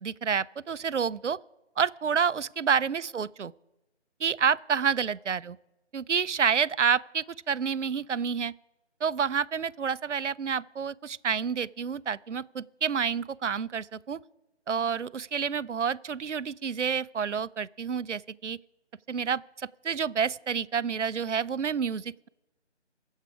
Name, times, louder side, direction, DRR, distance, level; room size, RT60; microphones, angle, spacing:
voice 1, 0.0-1.4 1.8-3.5 4.2-5.6 5.9-8.5 9.0-14.2 14.7-18.6 19.1-22.3, right 6 dB, 80° right, 0.5 m, -29 dB
21.5 x 7.3 x 4.8 m
figure-of-eight pair, 160°, 36 cm